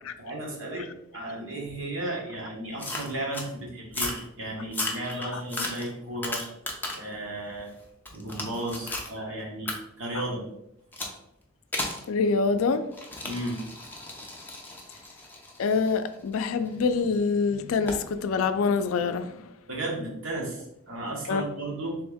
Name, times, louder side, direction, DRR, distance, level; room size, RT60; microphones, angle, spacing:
voice 1, 0.2-6.5 6.9-7.7 8.1-10.5 13.2-13.7 19.7-22.0, right 1 dB, 70° right, 1.3 m, -34 dB
sound 1, 2.8-3.5 3.9-4.3 4.7-7.1 7.5-9.1 9.7-9.8 10.9-11.2 11.7-12.0 12.9-16.9 17.9-18.1, left 2 dB, 10° left, 0.6 m, -35 dB
voice 2, 12.1-12.9 15.6-19.5 21.3-21.4, left 4 dB, 90° left, 0.4 m, -25 dB
3.5 x 3.4 x 3.4 m
head